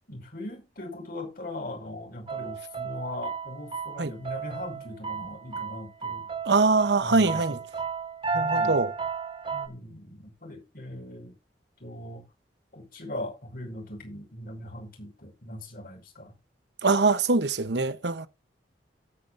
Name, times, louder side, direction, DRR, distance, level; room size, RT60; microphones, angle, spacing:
voice 1, 0.1-6.3 7.0-7.6 8.3-8.8 9.5-11.4 11.8-12.2 12.7-16.3, left 1 dB, 55° left, 5.6 m, -39 dB
sound 1, 2.3-9.7, right 5 dB, 30° right, 2.8 m, -33 dB
voice 2, 6.5-7.6 8.3-8.9 16.8-18.3, right 3 dB, 75° right, 1.0 m, -23 dB
17.5 x 9.1 x 2.7 m
head